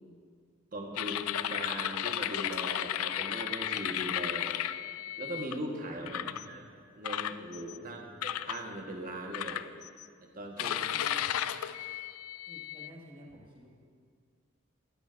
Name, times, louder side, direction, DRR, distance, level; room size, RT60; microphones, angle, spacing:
voice 1, 0.7-4.5 5.2-6.2 6.5-6.6 7.0-9.6 10.2-11.0, right 1 dB, 40° right, 1 dB, 1.3 m, -40 dB
sound 1, 1.0-5.5 6.1-6.5 7.0-7.8 8.2-8.6 9.3-10.1 10.6-12.9, left 11 dB, 90° left, 0.3 m, -34 dB
voice 2, 6.1-6.5 7.8-8.3 10.6-11.6 12.5-13.7, equal, 25° right, -3 dB, 1.7 m, -52 dB
13.5 x 13.5 x 2.5 m, 2.1 s
head